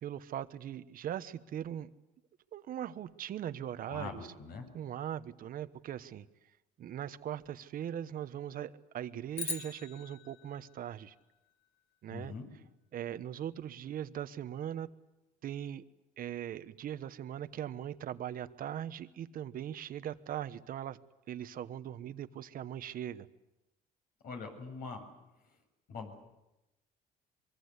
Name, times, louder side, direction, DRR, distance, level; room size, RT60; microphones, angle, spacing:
voice 1, 0.0-1.9 2.5-4.3 4.7-6.3 6.8-11.1 12.0-12.3 12.9-14.9 15.4-15.8 16.2-21.0 21.3-23.3, right 10 dB, 55° right, 13 dB, 1.2 m, -40 dB
voice 2, 3.9-4.6 12.1-12.5 24.2-25.1 25.9-26.1, left 4 dB, 60° left, 4 dB, 7.4 m, -42 dB
sound 1, 9.3-11.8, left 4 dB, 40° left, 3.5 m, -43 dB
24.5 x 23.5 x 8.3 m, 0.97 s
cardioid pair, 110°, 17 cm